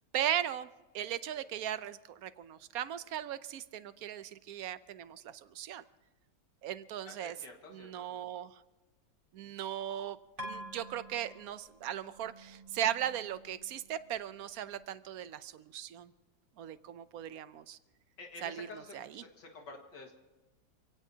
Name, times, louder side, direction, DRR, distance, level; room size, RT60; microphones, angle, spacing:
voice 1, 0.1-0.7 0.9-5.8 6.6-7.4 7.7-8.6 9.3-10.2 10.4-16.1 16.6-17.8 18.4-19.2, right 10 dB, 65° right, 14 dB, 1.0 m, -38 dB
voice 2, 7.0-8.2 18.2-20.1, left 3 dB, 75° left, 2 dB, 2.3 m, -50 dB
sound 1, 10.4-14.8, equal, 40° right, 2.8 m, -49 dB
27.5 x 17.5 x 2.8 m, 1.1 s
omnidirectional pair, 1.9 m